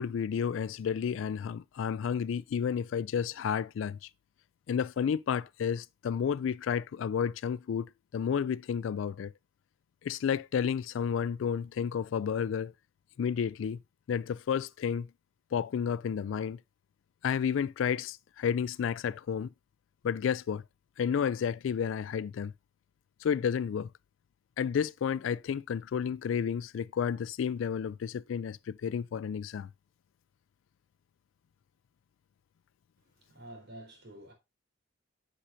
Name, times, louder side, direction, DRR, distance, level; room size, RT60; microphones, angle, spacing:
voice 1, 0.0-4.1 4.7-7.9 8.1-9.3 10.0-12.7 13.2-13.8 14.1-15.1 15.5-16.6 17.2-19.5 20.0-20.6 21.0-22.5 23.2-23.9 24.6-29.7, left 7 dB, 70° left, 0.3 m, -31 dB
voice 2, 33.0-34.3, right 1 dB, 60° right, 3.7 m, -49 dB
10.0 x 6.3 x 2.6 m
head